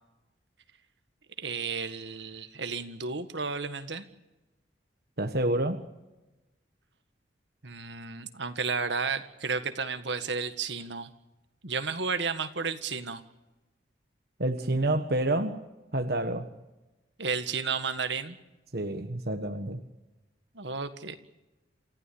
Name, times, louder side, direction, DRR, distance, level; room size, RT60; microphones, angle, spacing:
voice 1, 1.4-4.0 7.6-11.1 11.6-13.2 17.2-18.4 20.5-21.2, right 5 dB, 75° right, 9 dB, 1.7 m, -32 dB
voice 2, 5.2-5.8 14.4-15.6 15.9-16.5 18.7-19.8, right 1 dB, 55° right, 6 dB, 1.5 m, -28 dB
28.5 x 15.0 x 8.6 m, 1.0 s
head